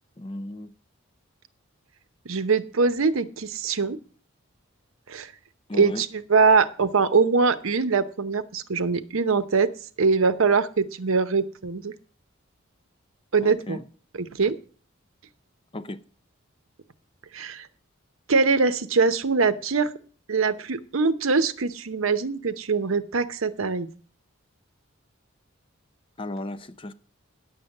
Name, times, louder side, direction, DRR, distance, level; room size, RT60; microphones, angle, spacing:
voice 1, 0.2-0.7 5.7-6.0 13.4-13.8 15.7-16.0 26.2-26.9, left 1 dB, 25° left, 0.5 m, -35 dB
voice 2, 2.2-4.0 5.1-5.3 5.7-9.7 10.0-11.9 13.3-13.8 14.1-14.5 17.3-17.7 18.3-19.9 20.3-23.9, right 4 dB, 75° right, 0.8 m, -23 dB
10.0 x 7.4 x 6.5 m
head